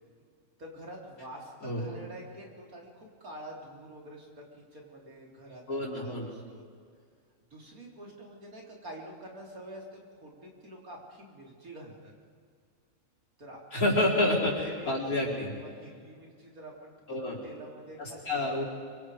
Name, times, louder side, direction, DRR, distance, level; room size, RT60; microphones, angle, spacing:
voice 1, 0.6-6.6 7.5-12.1 13.4-13.8 14.6-18.5, right 1 dB, 85° right, -1 dB, 4.2 m, -47 dB
voice 2, 1.6-2.0 5.7-6.3 13.7-15.5 17.1-17.4 18.0-18.6, left 1 dB, 85° left, -4 dB, 4.5 m, -29 dB
25.0 x 24.5 x 5.0 m, 2.1 s
omnidirectional pair, 1.5 m